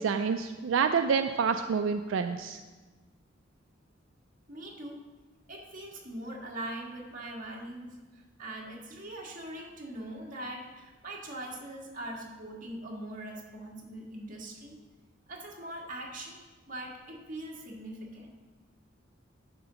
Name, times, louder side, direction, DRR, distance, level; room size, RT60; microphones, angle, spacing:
voice 1, 0.0-2.6, right 6 dB, 85° right, 7 dB, 0.4 m, -28 dB
voice 2, 4.5-5.0 5.5-14.7 15.3-18.3, right 1 dB, 45° right, -2 dB, 1.6 m, -42 dB
11.0 x 3.8 x 5.6 m, 1.3 s
head